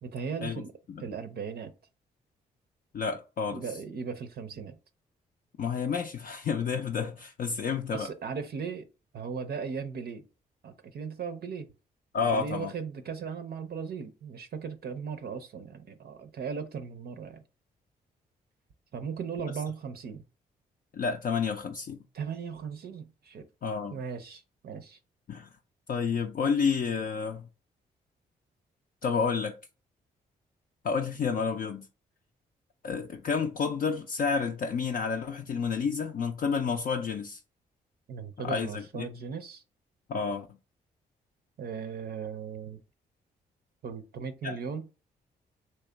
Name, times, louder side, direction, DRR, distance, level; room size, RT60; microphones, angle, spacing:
voice 1, 0.0-0.7 1.0-1.7 3.5-4.8 7.9-8.9 9.1-10.2 10.6-11.7 12.2-17.4 18.9-20.2 22.1-23.5 23.9-25.0 38.1-39.6 41.6-42.8 43.8-44.9, right 6 dB, 50° right, 0.5 m, -37 dB
voice 2, 2.9-3.6 5.6-8.1 12.1-12.7 20.9-22.0 23.6-24.0 25.3-25.5 25.9-27.4 29.0-29.6 30.8-31.9 32.8-37.4 38.4-39.1 40.1-40.5 44.4-44.6, left 5 dB, 45° left, 0.5 m, -30 dB
3.1 x 2.8 x 3.2 m
hypercardioid pair, 40°, 21 cm